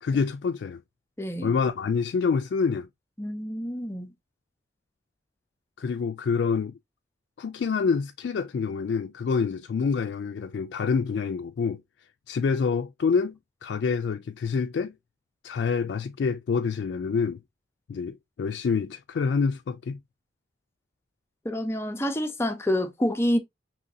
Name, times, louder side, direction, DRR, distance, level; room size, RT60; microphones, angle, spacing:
voice 1, 0.0-0.8 1.4-2.9 5.8-6.8 7.4-11.8 12.3-14.9 15.4-17.4 17.9-20.0, left 5 dB, 65° left, 0.3 m, -27 dB
voice 2, 1.2-1.6 3.2-4.1 21.4-23.4, equal, 15° left, 0.6 m, -27 dB
5.1 x 3.0 x 2.6 m
head